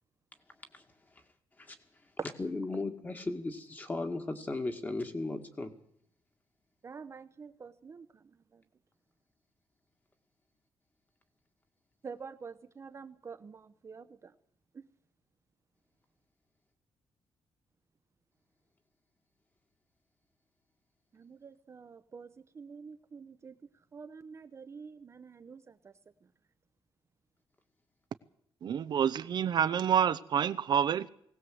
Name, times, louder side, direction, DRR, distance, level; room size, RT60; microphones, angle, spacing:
voice 1, 2.4-5.7, left 2 dB, 20° left, 2.1 m, -36 dB
voice 2, 6.8-8.6 12.0-14.3 14.7-14.9 21.1-25.9 26.2-26.3, right 5 dB, 30° right, 0.9 m, -47 dB
voice 3, 28.6-31.1, right 8 dB, 55° right, 0.7 m, -28 dB
20.5 x 18.0 x 7.9 m
wide cardioid pair, 165°, 9 cm